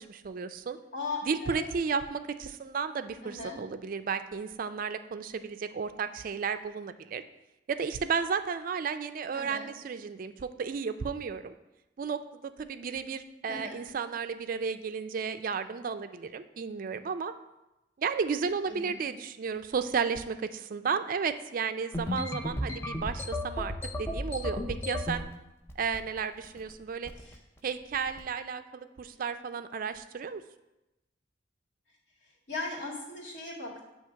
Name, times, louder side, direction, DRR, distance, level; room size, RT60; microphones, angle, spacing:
voice 1, 0.0-0.8 1.3-7.2 7.7-11.5 12.0-17.3 18.0-23.7 24.0-25.3 25.8-27.1 27.6-30.4, right 6 dB, 45° right, 10 dB, 0.3 m, -33 dB
voice 2, 0.9-1.7 3.2-3.6 9.3-9.7 13.5-13.8 18.7-19.0 27.2-27.4 32.2-33.8, left 3 dB, 85° left, -3 dB, 1.8 m, -38 dB
sound 1, 21.9-25.2 25.7-26.2 26.4-26.7 27.1-27.3 27.9-28.2, left 1 dB, 15° left, 0.5 m, -34 dB
8.2 x 2.9 x 5.6 m, 0.95 s
head